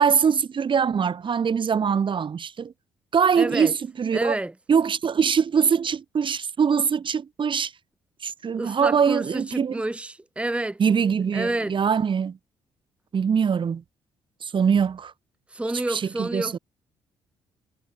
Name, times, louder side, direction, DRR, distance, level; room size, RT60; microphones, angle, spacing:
voice 1, 0.0-2.7 3.1-4.4 4.7-7.7 8.2-9.8 10.8-12.4 13.1-13.8 14.4-15.1 15.9-16.5, right 6 dB, 45° right, 1.5 m, -23 dB
voice 2, 3.4-3.7 4.1-4.5 8.5-10.8 11.3-11.7 15.5-16.6, right 2 dB, 10° right, 1.0 m, -29 dB
hypercardioid pair, 55°, 11 cm